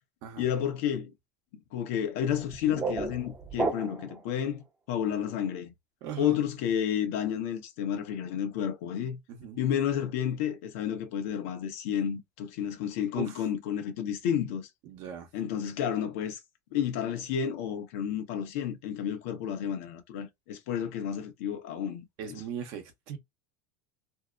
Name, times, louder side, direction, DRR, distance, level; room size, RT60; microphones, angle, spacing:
voice 1, 0.4-1.1 1.7-5.7 6.2-9.2 9.6-14.7 15.3-16.4 16.7-22.4, left 9 dB, 70° left, 0.8 m, -31 dB
sound 1, 2.3-4.2, right 3 dB, 20° right, 0.7 m, -33 dB
voice 2, 6.0-6.4 9.3-9.6 13.1-13.3 14.9-15.3 22.2-23.2, right 8 dB, 60° right, 0.8 m, -38 dB
2.7 x 2.0 x 2.4 m
hypercardioid pair, 100°, 8 cm